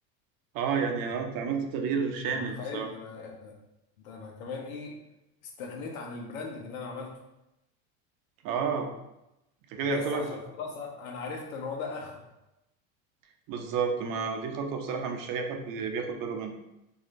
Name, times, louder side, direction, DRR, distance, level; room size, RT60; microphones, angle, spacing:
voice 1, 0.5-2.9 8.4-8.9 9.7-10.3 13.5-16.5, right 5 dB, 55° right, 4 dB, 0.7 m, -30 dB
voice 2, 2.3-3.5 4.0-4.9 5.4-7.1 9.8-12.2, left 4 dB, 85° left, 1 dB, 1.0 m, -38 dB
3.1 x 2.8 x 4.0 m, 0.91 s
supercardioid pair, 105°, 41 cm